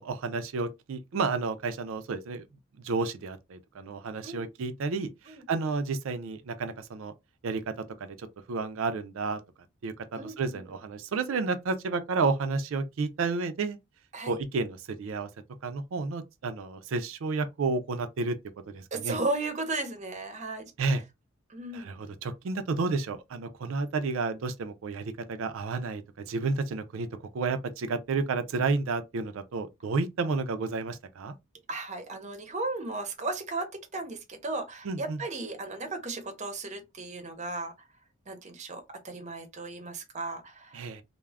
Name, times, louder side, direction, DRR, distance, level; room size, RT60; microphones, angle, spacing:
voice 1, 0.0-2.4 2.8-7.1 7.4-9.4 9.8-13.8 14.3-15.3 15.6-18.4 18.7-19.2 20.8-21.0 21.7-27.1 27.3-31.3 34.8-35.2 40.7-41.0, right 4 dB, 80° right, 0.4 m, -31 dB
voice 2, 10.1-10.6 14.1-14.3 18.9-20.7 21.5-21.9 31.7-37.7 38.3-40.8, right 2 dB, 35° right, 0.7 m, -35 dB
2.3 x 2.1 x 3.3 m
head